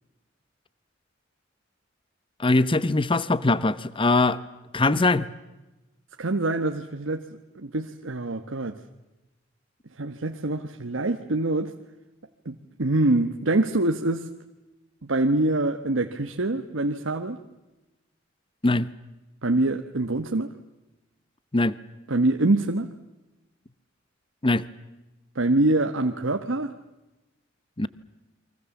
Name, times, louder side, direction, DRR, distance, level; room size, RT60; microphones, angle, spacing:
voice 1, 2.4-4.4 4.7-5.3 18.6-18.9 21.5-21.7 24.4-24.6 27.8-27.9, left 2 dB, 25° left, 16 dB, 0.8 m, -21 dB
voice 2, 6.2-7.3 7.6-8.8 10.0-11.7 12.4-14.3 15.1-17.4 19.4-20.5 22.1-22.9 25.3-26.7, right 2 dB, 90° right, 5 dB, 1.2 m, -25 dB
29.5 x 24.0 x 7.2 m, 1.0 s
head